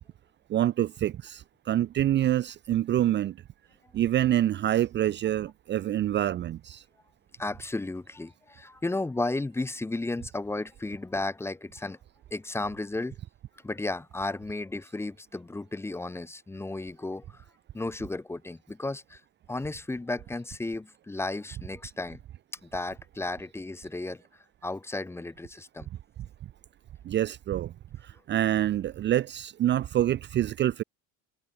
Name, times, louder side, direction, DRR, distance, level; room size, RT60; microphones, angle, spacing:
voice 1, 0.5-3.4 3.9-6.8 27.0-27.7 28.0-30.8, right 12 dB, 30° right, 0.9 m, -26 dB
voice 2, 7.4-12.0 12.3-13.2 13.6-17.4 17.7-19.2 19.5-22.2 22.6-24.2 24.6-25.9, left 2 dB, 5° left, 1.5 m, -34 dB
cardioid pair, 180°, 38 cm